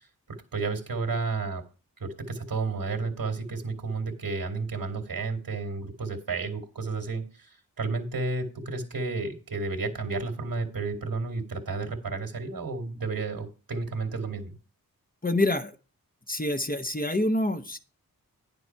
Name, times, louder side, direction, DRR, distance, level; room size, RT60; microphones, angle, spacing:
voice 1, 0.3-1.6 2.0-14.5, right 3 dB, 75° right, 3 dB, 2.5 m, -32 dB
voice 2, 15.2-15.7 16.3-17.8, left 1 dB, 25° left, 7 dB, 1.0 m, -26 dB
10.0 x 7.0 x 4.6 m, 0.34 s
cardioid pair, 55°, 36 cm